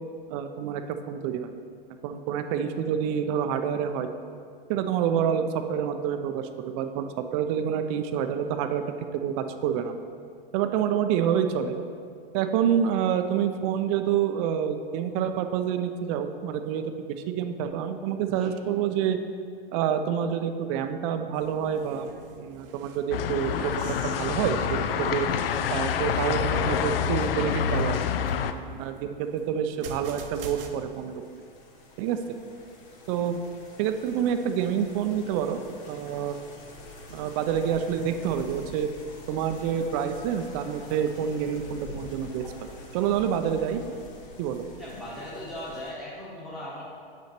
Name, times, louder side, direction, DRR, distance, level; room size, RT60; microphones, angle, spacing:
voice 1, 0.3-1.5 2.0-4.1 4.7-10.0 10.5-11.8 12.3-19.2 19.7-22.1 22.4-25.3 25.7-28.0 28.4-31.2 32.0-32.2 33.1-33.4 33.8-35.6 35.8-36.4 37.1-38.9 39.3-42.4 42.9-43.8 44.4-44.6, right 8 dB, 40° right, 8 dB, 0.4 m, -27 dB
sound 1, 21.3-30.7, right 5 dB, 70° right, 0.7 m, -47 dB
sound 2, 23.1-28.5, left 8 dB, 75° left, 0.4 m, -27 dB
sound 3, 30.5-45.9, left 3 dB, 55° left, 1.5 m, -46 dB
voice 2, 44.8-46.9, left 1 dB, ahead, -8 dB, 1.0 m, -38 dB
7.6 x 5.8 x 2.9 m, 2.2 s
hypercardioid pair, 115°, 29 cm